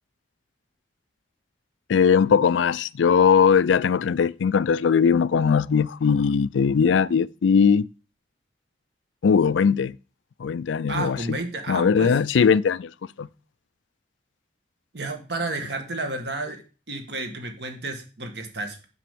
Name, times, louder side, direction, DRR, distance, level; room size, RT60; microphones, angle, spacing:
voice 1, 1.9-7.9 9.2-10.0 10.4-11.4 11.7-12.9 13.2-13.3, left 6 dB, 85° left, 0.4 m, -20 dB
voice 2, 10.9-12.1 14.9-16.6 16.9-18.8, right 2 dB, 65° right, 1.9 m, -31 dB
7.5 x 6.1 x 6.8 m
head